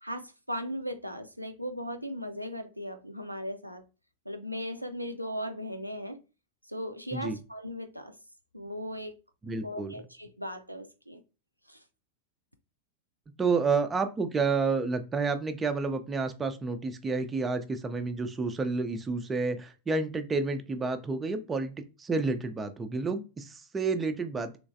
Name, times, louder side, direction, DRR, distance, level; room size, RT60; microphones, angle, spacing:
voice 1, 0.0-3.8 4.3-6.2 6.7-8.1 8.5-9.2 9.6-11.2 11.7-11.8, equal, 90° right, 0.4 m, -37 dB
voice 2, 9.4-9.9 13.4-24.6, right 4 dB, 15° right, 0.4 m, -30 dB
3.2 x 3.1 x 2.5 m
figure-of-eight pair, 90°, 0 cm